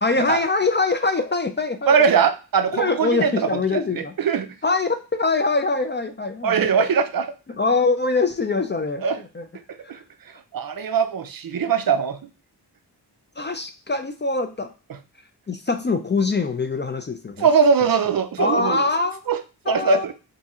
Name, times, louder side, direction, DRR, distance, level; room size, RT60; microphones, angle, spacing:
voice 1, 0.0-1.9 2.7-4.1 4.6-6.7 7.5-9.5 13.4-14.7 15.5-17.5 18.4-19.2 19.7-20.1, left 3 dB, 30° left, 7 dB, 0.3 m, -23 dB
voice 2, 1.9-3.3 3.7-4.5 6.4-7.3 9.0-9.2 9.9-10.0 10.5-12.2 17.4-18.8 19.3-19.4 19.7-20.1, right 6 dB, 60° right, 10 dB, 0.5 m, -20 dB
3.5 x 2.7 x 4.1 m, 0.32 s
wide cardioid pair, 135°, 41 cm